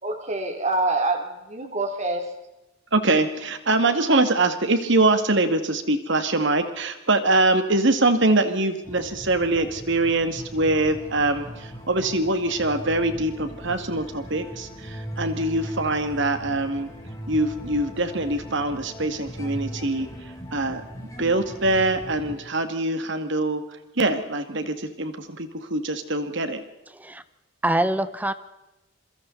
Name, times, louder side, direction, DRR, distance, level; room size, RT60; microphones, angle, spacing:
voice 1, 0.0-2.3, right 2 dB, 35° right, 4 dB, 3.2 m, -26 dB
voice 2, 2.9-16.9 17.3-20.1 20.5-20.8 21.2-23.6 24.0-26.6, right 2 dB, 60° right, 8 dB, 2.3 m, -23 dB
sound 1, 8.8-22.4, equal, 15° left, 4.0 m, -39 dB
voice 3, 27.6-28.3, right 1 dB, 10° right, 13 dB, 0.8 m, -24 dB
27.0 x 23.5 x 4.1 m, 0.98 s
head